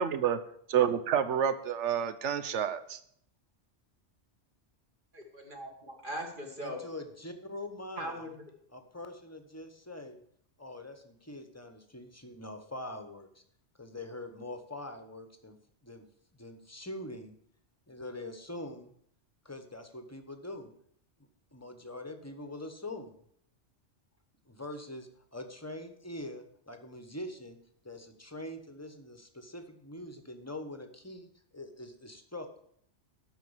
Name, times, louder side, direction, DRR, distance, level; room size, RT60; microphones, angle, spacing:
voice 1, 0.0-0.4 0.7-3.0, right 8 dB, 85° right, 12 dB, 1.1 m, -28 dB
voice 2, 5.1-6.8 8.0-8.3, equal, 45° right, 1 dB, 2.2 m, -40 dB
voice 3, 6.6-8.3 8.7-10.2 10.6-13.4 13.8-15.5 15.8-16.0 16.4-17.3 17.9-18.9 19.4-20.7 21.5-23.1 24.5-27.6 27.8-32.6, left 1 dB, 15° left, 7 dB, 1.1 m, -43 dB
12.5 x 4.6 x 8.0 m, 0.66 s
omnidirectional pair, 1.2 m